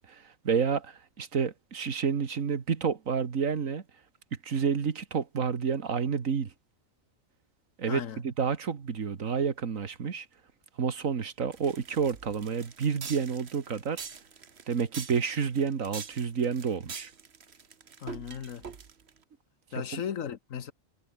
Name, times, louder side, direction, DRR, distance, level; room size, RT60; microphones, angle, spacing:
voice 1, 0.0-3.8 4.4-6.5 7.8-10.3 10.8-14.1 14.7-17.1 19.8-20.0, right 6 dB, 85° right, 2.0 m, -30 dB
voice 2, 7.9-8.2 18.0-18.7 19.7-20.7, left 8 dB, 80° left, 1.5 m, -36 dB
sound 1, 11.5-19.2, right 6 dB, 55° right, 1.6 m, -44 dB
omnidirectional pair, 1.4 m